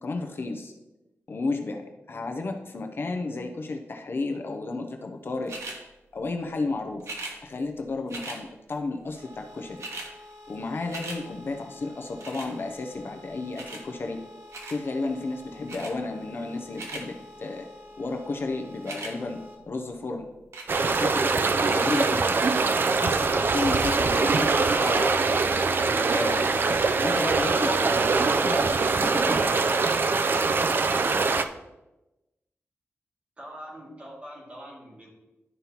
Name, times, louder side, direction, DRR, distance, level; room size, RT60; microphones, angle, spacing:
voice 1, 0.0-0.7 1.3-5.5 6.1-7.0 7.4-9.8 10.5-14.2 14.7-17.7 18.0-19.4 19.7-20.3 20.9-22.4 22.8-25.2 26.1-26.5 27.0-29.5, left 3 dB, 50° left, 4 dB, 0.6 m, -32 dB
sound 1, 5.5-5.8 7.0-7.4 8.1-8.4 9.3-9.4 9.6-10.1 10.5-11.2 12.2-12.5 13.6-13.8 14.5-14.8 15.7-15.9 16.5-17.0 18.7-19.1 20.5-20.9 21.7-22.1 22.7-22.8, right 2 dB, 90° right, 1.2 m, -38 dB
sound 2, 9.2-19.5, left 2 dB, 65° right, 2.0 m, -48 dB
sound 3, 20.7-31.5, right 4 dB, 45° right, 0.4 m, -23 dB
voice 2, 33.4-35.1, equal, 25° right, -4 dB, 2.2 m, -43 dB
11.0 x 5.4 x 2.9 m, 1.0 s
wide cardioid pair, 145°, 5 cm